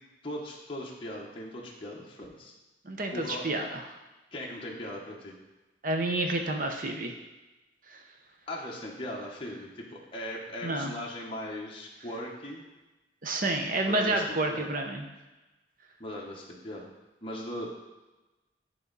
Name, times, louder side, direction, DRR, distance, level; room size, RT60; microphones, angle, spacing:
voice 1, 0.2-2.5 3.1-3.4 4.3-5.3 8.5-12.6 13.9-14.7 16.0-16.9 17.2-17.7, left 1 dB, 30° left, -3 dB, 1.1 m, -39 dB
voice 2, 2.8-3.8 5.8-7.1 10.6-10.9 13.2-15.1, right 2 dB, 50° right, 3 dB, 0.8 m, -29 dB
11.0 x 3.6 x 4.0 m, 1.1 s
head